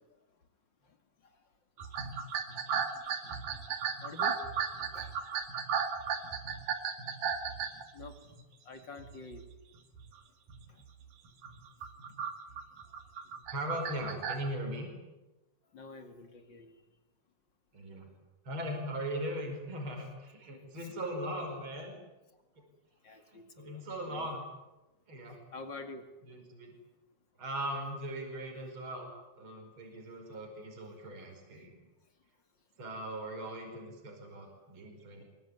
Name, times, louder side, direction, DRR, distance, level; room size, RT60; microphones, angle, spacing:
voice 1, 0.8-1.5 1.8-2.6 3.3-3.5 4.0-4.4 4.9-5.2 7.9-9.5 10.7-10.8 12.9-13.0 15.6-16.8 20.8-20.9 21.3-21.4 22.6-22.7 23.0-24.3 25.5-26.1 29.9-30.0, left 3 dB, 40° left, 7 dB, 2.6 m, -49 dB
sound 1, 1.8-8.4 9.0-9.4 9.8-10.1 10.5-10.6 11.3-14.5, right 7 dB, 85° right, 3.6 m, -35 dB
voice 2, 13.5-14.9 17.7-18.1 18.4-22.0 23.3-24.4 25.1-25.4 26.3-26.7 27.4-29.1 29.4-31.8 32.8-35.2, right 1 dB, 40° right, 2 dB, 5.7 m, -39 dB
25.0 x 22.0 x 9.5 m, 1.1 s
omnidirectional pair, 3.5 m